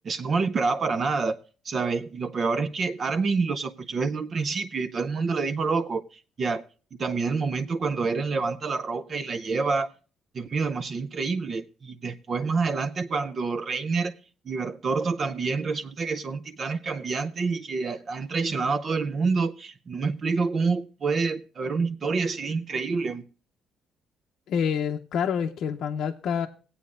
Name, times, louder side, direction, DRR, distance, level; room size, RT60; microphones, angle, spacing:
voice 1, 0.0-1.4 1.6-6.6 7.0-9.9 10.3-14.1 14.5-23.2, right 4 dB, 35° right, 0.5 m, -27 dB
voice 2, 24.5-26.5, left 7 dB, 65° left, 0.6 m, -27 dB
18.0 x 8.3 x 2.5 m
cardioid pair, 135°, 0 cm